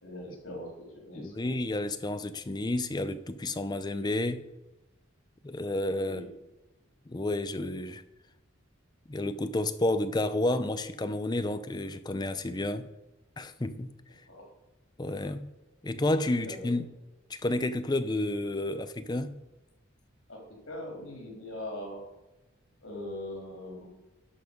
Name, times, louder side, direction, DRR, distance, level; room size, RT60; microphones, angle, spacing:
voice 1, 0.0-1.5 6.0-6.3 14.3-14.5 16.4-16.7 20.3-20.4 20.7-22.0 22.8-23.9, left 1 dB, 80° left, 3.6 m, -41 dB
voice 2, 1.1-4.4 5.4-6.2 7.1-8.0 9.1-12.9 13.4-13.9 15.0-15.5 15.8-16.9 17.3-19.4, left 1 dB, 20° left, 0.5 m, -30 dB
11.5 x 5.7 x 5.3 m
head